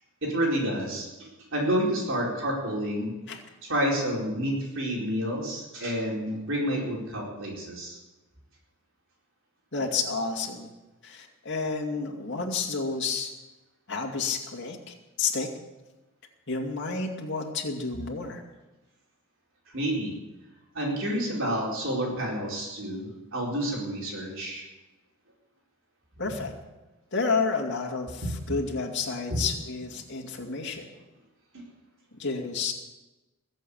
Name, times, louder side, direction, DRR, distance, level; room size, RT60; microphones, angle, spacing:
voice 1, 0.2-3.1 3.6-8.0 19.7-20.2 20.7-24.6 28.2-28.4 29.3-29.4, equal, 60° right, -3 dB, 4.5 m, -29 dB
voice 2, 9.7-10.7 11.0-13.3 13.9-15.5 16.5-18.4 26.2-26.5 27.1-28.2 28.5-30.9 32.1-32.7, left 4 dB, 55° left, 0 dB, 2.5 m, -30 dB
21.5 x 7.5 x 8.7 m, 1.1 s
head